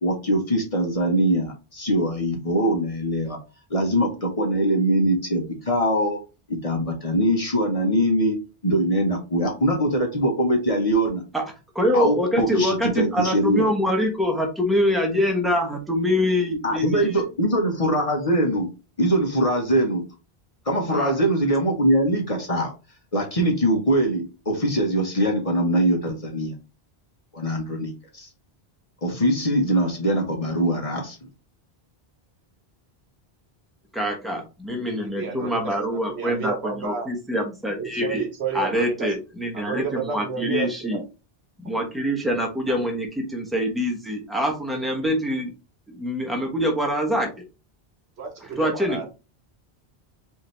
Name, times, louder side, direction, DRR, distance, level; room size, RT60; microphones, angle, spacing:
voice 1, 0.0-3.4 3.7-6.2 6.5-8.4 8.6-11.2 11.9-13.6 16.6-18.7 19.0-20.0 20.7-22.7 23.1-26.5 27.3-28.3 29.0-31.2, right 1 dB, 35° left, 2 dB, 1.0 m, -22 dB
voice 2, 11.7-17.1 20.9-21.1 33.9-38.3 38.5-41.0 41.6-45.5 45.9-47.3 48.6-49.0, equal, ahead, 1 dB, 0.9 m, -24 dB
voice 3, 34.9-37.1 37.8-39.1 39.5-41.0 48.2-49.1, right 5 dB, 85° right, 3 dB, 1.4 m, -31 dB
4.9 x 2.8 x 3.1 m, 0.30 s
omnidirectional pair, 1.1 m